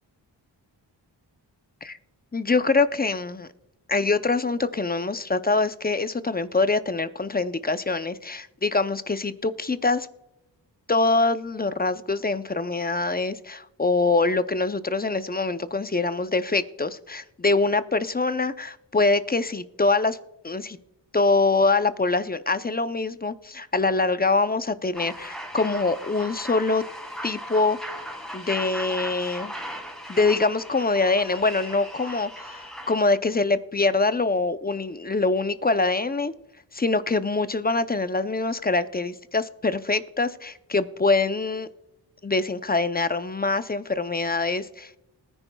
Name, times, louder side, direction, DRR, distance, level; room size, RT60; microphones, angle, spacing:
voice 1, 2.3-3.5 3.9-10.1 10.9-20.2 20.4-20.8 21.1-26.8 27.2-27.8 28.3-29.6 30.1-36.3 36.7-41.7 42.2-44.9, left 3 dB, 20° left, 0.6 m, -24 dB
sound 1, 24.9-33.0, equal, ahead, 2.7 m, -37 dB
20.5 x 9.8 x 2.3 m
cardioid pair, 65°, 44 cm